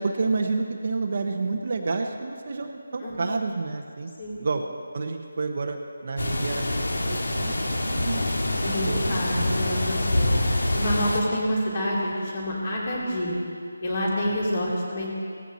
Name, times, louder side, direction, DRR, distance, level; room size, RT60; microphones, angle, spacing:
voice 1, 0.0-4.1 4.4-4.6 4.9-5.8 6.0-8.2 8.5-9.2 9.8-10.0 14.2-14.3, right 3 dB, 40° right, 4 dB, 0.9 m, -30 dB
sound 1, 6.2-11.2, left 1 dB, 85° left, 1.9 m, -25 dB
voice 2, 8.6-10.4 10.7-13.3 13.8-15.1, equal, 35° left, -4 dB, 3.2 m, -27 dB
17.5 x 14.5 x 4.1 m, 2.3 s
figure-of-eight pair, 175°, 0 cm